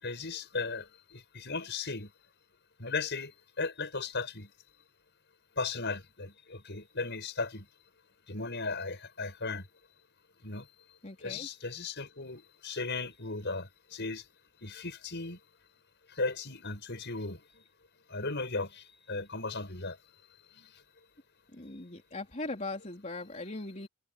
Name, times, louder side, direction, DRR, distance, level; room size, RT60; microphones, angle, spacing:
voice 1, 0.0-0.8 1.1-2.1 2.8-4.5 5.6-7.7 8.3-9.6 10.4-10.6 11.2-14.2 14.6-15.4 16.2-17.4 18.1-20.0 20.6-20.7, left 3 dB, 50° left, 7.8 m, -36 dB
voice 2, 11.0-11.5 21.5-23.9, left 2 dB, 35° left, 3.8 m, -39 dB
head